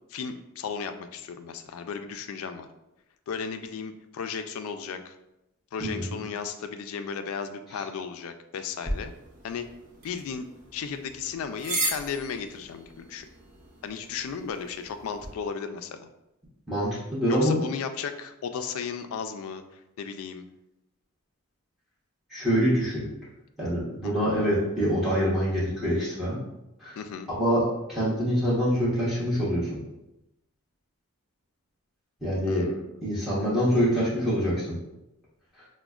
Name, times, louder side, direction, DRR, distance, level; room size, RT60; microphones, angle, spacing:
voice 1, 0.1-2.7 3.3-5.2 5.7-9.1 9.4-9.7 10.0-13.3 13.8-16.1 17.3-20.4 24.0-24.1 27.0-27.3 32.5-33.0, left 6 dB, 70° left, 8 dB, 0.3 m, -35 dB
sound 1, 8.8-15.3, right 1 dB, 35° right, 0.6 m, -37 dB
voice 2, 16.7-17.6 22.3-23.1 23.6-26.4 26.8-27.0 27.3-27.6 27.9-29.8 32.2-32.7 33.0-34.7, equal, ahead, -10 dB, 0.9 m, -25 dB
4.9 x 2.1 x 2.3 m, 0.89 s
head